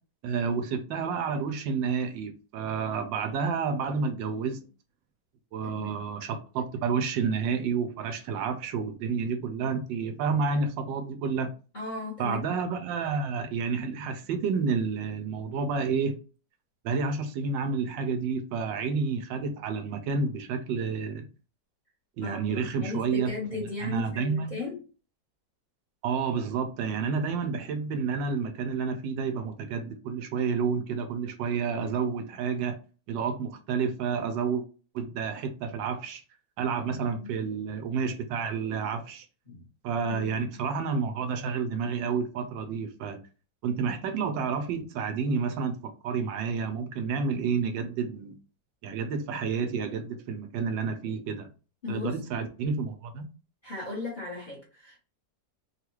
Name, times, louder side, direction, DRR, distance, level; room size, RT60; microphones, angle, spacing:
voice 1, 0.2-4.7 5.5-11.5 12.2-16.2 16.8-21.2 22.2-23.3 23.8-24.5 26.0-32.8 33.1-34.6 34.9-36.2 36.6-39.2 39.8-43.2 43.6-48.3 48.8-51.5 51.9-53.3, right 5 dB, 90° right, 1.3 m, -30 dB
voice 2, 11.7-12.4 22.2-24.8 36.8-37.3 39.5-39.6 40.1-40.5 51.8-52.2 53.6-55.0, left 3 dB, 30° left, 1.0 m, -36 dB
3.4 x 2.4 x 3.0 m
omnidirectional pair, 2.0 m